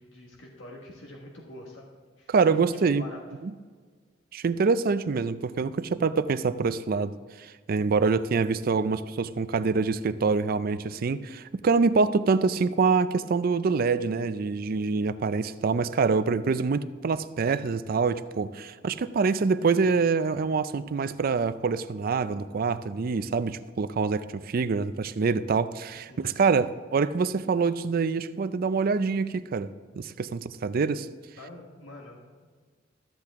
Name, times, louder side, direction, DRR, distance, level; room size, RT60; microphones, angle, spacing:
voice 1, 0.0-1.9 2.2-2.6 3.0-3.2 19.8-20.0 26.1-26.6 31.4-32.5, left 1 dB, 85° left, -1 dB, 1.5 m, -46 dB
voice 2, 2.3-3.0 3.4-3.5 4.3-31.1, right 4 dB, 50° right, 14 dB, 0.4 m, -25 dB
13.5 x 7.7 x 3.6 m, 1.5 s
head